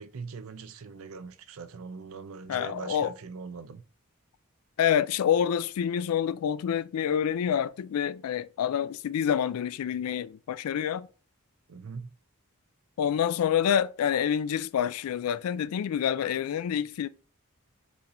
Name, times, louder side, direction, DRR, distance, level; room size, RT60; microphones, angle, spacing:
voice 1, 0.0-3.8 11.7-12.1, right 5 dB, 70° right, 0.5 m, -41 dB
voice 2, 2.5-3.1 4.8-11.1 13.0-17.1, left 8 dB, 85° left, 0.3 m, -27 dB
4.2 x 4.1 x 2.6 m
head